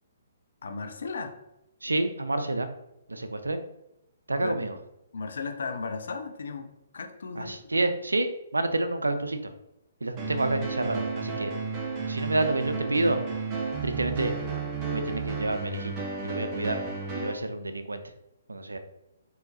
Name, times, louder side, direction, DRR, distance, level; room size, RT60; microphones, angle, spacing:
voice 1, 0.6-1.4 4.4-4.6 5.1-7.6, left 4 dB, 65° left, 6 dB, 0.5 m, -35 dB
voice 2, 1.8-2.7 3.1-3.6 4.3-4.7 7.4-9.5 10.0-11.5 12.1-13.2 13.8-14.4 14.9-16.8 17.2-18.0 18.5-18.8, right 2 dB, 85° right, 8 dB, 0.4 m, -29 dB
sound 1, 10.2-17.3, right 4 dB, 30° right, 0.7 m, -32 dB
3.8 x 2.8 x 2.7 m, 0.87 s
figure-of-eight pair, 130°, 0 cm